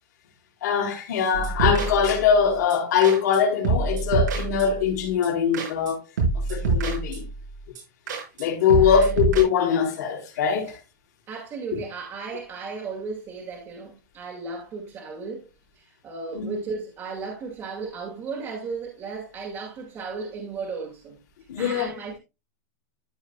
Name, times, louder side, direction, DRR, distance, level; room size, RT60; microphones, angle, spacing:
voice 1, 0.6-6.0 6.5-7.2 8.4-10.7 11.7-11.8 16.3-16.6 21.5-21.9, left 7 dB, 70° left, 3.9 m, -22 dB
sound 1, 1.3-2.4 2.7-2.8 3.0-3.4 3.6-4.9 5.2-5.3 5.5-5.9 6.2-7.4 7.7-7.8 8.1-8.4 8.7-9.4, right 3 dB, 90° right, 5.2 m, -26 dB
voice 2, 8.7-9.2 11.3-15.5 15.9-21.2 21.5-22.2, right 4 dB, 25° right, 2.1 m, -35 dB
13.5 x 5.7 x 2.3 m
supercardioid pair, 150°, 10 cm